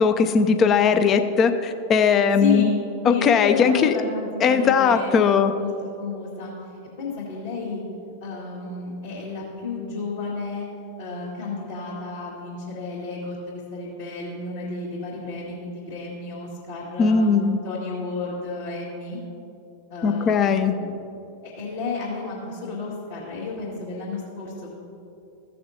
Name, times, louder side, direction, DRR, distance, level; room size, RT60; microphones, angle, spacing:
voice 1, 0.0-2.7 3.1-3.9 4.4-5.5 17.0-17.6 20.0-20.7, left 6 dB, 30° left, 8 dB, 0.5 m, -19 dB
voice 2, 2.4-2.7 3.0-5.1 5.6-6.5 7.0-7.8 8.2-10.7 11.0-17.3 17.6-19.2 19.9-21.0 21.4-24.7, left 4 dB, 60° left, -11 dB, 2.3 m, -31 dB
15.5 x 6.7 x 2.8 m, 2.8 s
figure-of-eight pair, 90°, 0 cm